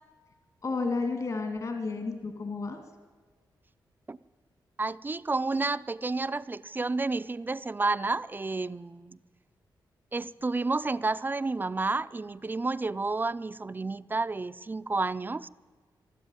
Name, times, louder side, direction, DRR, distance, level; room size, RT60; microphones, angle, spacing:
voice 1, 0.6-2.8, left 3 dB, 50° left, 5 dB, 2.4 m, -31 dB
voice 2, 4.8-9.2 10.1-15.5, right 3 dB, 25° right, 14 dB, 0.5 m, -30 dB
21.0 x 13.0 x 9.8 m, 1.5 s
wide cardioid pair, 105°, 8 cm